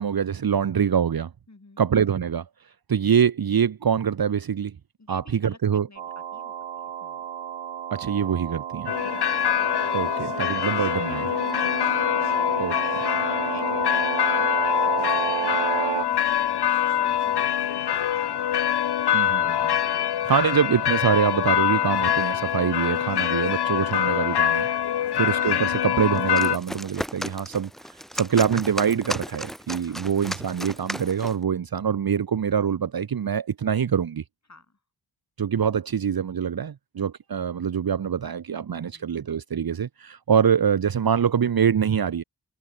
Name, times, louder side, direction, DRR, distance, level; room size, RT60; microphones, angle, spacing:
voice 1, 0.0-1.3 1.8-2.4 2.9-4.8 5.1-5.9 7.9-8.9 9.9-11.3 12.6-12.7 19.1-19.8 20.3-24.7 25.1-27.7 28.1-34.2 35.4-42.2, right 7 dB, 55° right, 0.8 m, -24 dB
voice 2, 1.5-1.8 5.0-5.6 5.9-6.6 6.8-7.2 12.2-18.5 29.8-30.1 34.5-34.8 38.7-39.2, left 3 dB, 40° left, 5.7 m, -49 dB
sound 1, 6.0-16.0, right 9 dB, 90° right, 0.9 m, -31 dB
sound 2, 8.9-26.6, left 10 dB, 65° left, 0.6 m, -24 dB
sound 3, 26.1-31.4, equal, ahead, 1.9 m, -35 dB
cardioid pair, 45°, 44 cm